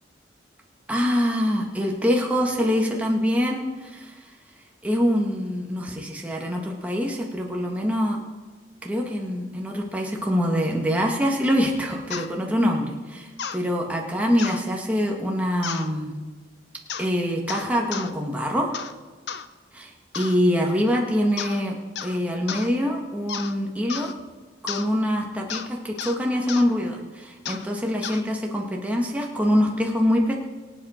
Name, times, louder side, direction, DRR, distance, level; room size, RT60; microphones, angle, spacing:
voice 1, 0.9-4.1 4.8-8.2 8.8-16.1 17.0-18.7 19.7-21.8 22.0-24.1 24.6-30.3, equal, 10° right, -1 dB, 1.5 m, -24 dB
sound 1, 12.1-12.3 13.4-13.6 14.4-14.6 15.6-15.9 16.9-17.1 17.5-18.1 18.7-19.0 19.3-19.5 20.1-20.4 21.4-21.6 22.0-22.2 22.5-22.7 23.3-23.5 23.9-24.1 24.7-24.9 25.5-25.7 26.0-26.2 26.5-26.7 27.5-27.7 28.0-28.2, left 7 dB, 65° left, 0.6 m, -33 dB
23.5 x 8.1 x 4.4 m, 1.3 s
head